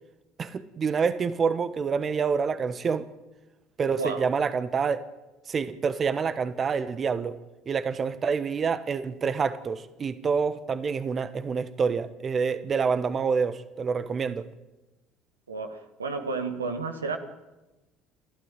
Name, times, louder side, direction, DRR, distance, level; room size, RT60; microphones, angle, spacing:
voice 1, 0.4-3.1 3.8-5.0 5.5-7.3 7.7-14.5, right 5 dB, 35° right, 1.2 m, -27 dB
voice 2, 15.5-17.2, right 4 dB, 85° right, 1.7 m, -31 dB
30.0 x 12.5 x 9.0 m
figure-of-eight pair, 60°, 0 cm